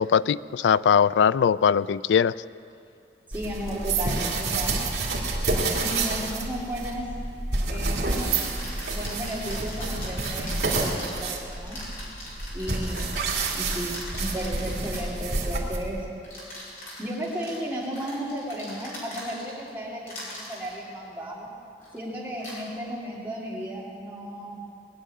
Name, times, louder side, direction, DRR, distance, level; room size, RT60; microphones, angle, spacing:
voice 1, 0.0-2.3, left 7 dB, 85° left, 17 dB, 0.3 m, -21 dB
voice 2, 3.3-4.9 5.7-7.1 7.7-8.3 8.9-11.8 12.5-13.1 13.6-16.0 17.0-21.5 21.9-24.6, equal, 10° right, -5 dB, 2.9 m, -34 dB
sound 1, 3.3-16.1, right 3 dB, 65° right, 2.3 m, -29 dB
sound 2, 7.1-7.2 8.1-15.3 16.2-19.7 20.0-20.7 21.8-22.0 22.4-22.6, left 1 dB, 50° left, 5.3 m, -41 dB
20.5 x 7.4 x 9.5 m, 2.5 s
head